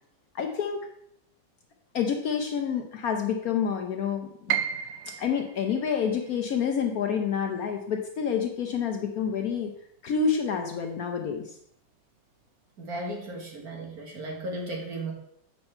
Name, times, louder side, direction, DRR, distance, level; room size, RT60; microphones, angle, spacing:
voice 1, 0.3-0.9 1.9-4.6 5.1-9.7 10.0-11.6, left 6 dB, 65° left, 4 dB, 1.0 m, -28 dB
Piano, 4.5-10.4 10.8-11.9 12.3-12.4 13.1-13.5, right 9 dB, 75° right, 0.8 m, -37 dB
voice 2, 12.8-15.1, right 1 dB, 55° right, 0 dB, 1.9 m, -35 dB
7.7 x 5.7 x 4.4 m, 0.73 s
omnidirectional pair, 2.0 m